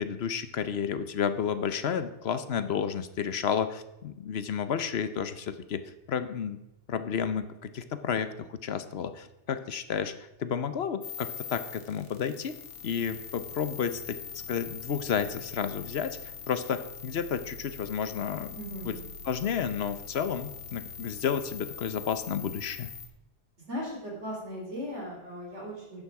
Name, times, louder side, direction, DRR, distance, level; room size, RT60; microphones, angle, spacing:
voice 1, 0.0-5.8 6.1-6.6 6.9-10.1 10.4-12.6 12.8-14.2 14.5-18.6 18.9-19.0 19.3-22.9, left 7 dB, 65° left, 12 dB, 1.0 m, -31 dB
sound 1, 11.0-23.1, left 6 dB, 90° left, 1.6 m, -43 dB
voice 2, 18.5-19.0 23.7-26.0, equal, 75° right, -2 dB, 3.9 m, -37 dB
12.5 x 9.0 x 4.7 m, 0.90 s
omnidirectional pair, 1.2 m